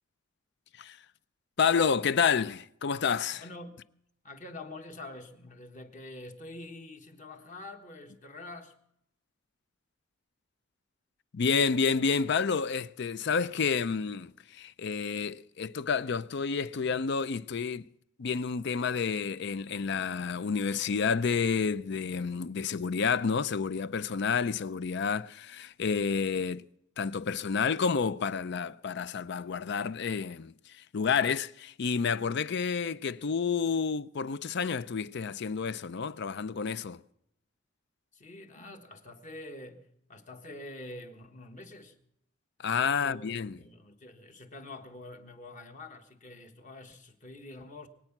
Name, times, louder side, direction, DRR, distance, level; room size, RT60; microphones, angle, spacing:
voice 1, 1.6-3.4 11.3-17.9 18.2-26.6 27.0-37.0 42.6-43.6, left 5 dB, 60° left, 0.5 m, -29 dB
voice 2, 3.4-3.8 4.2-8.7 38.1-42.0 42.8-47.9, left 2 dB, 40° left, 1.4 m, -46 dB
22.5 x 9.0 x 5.9 m
head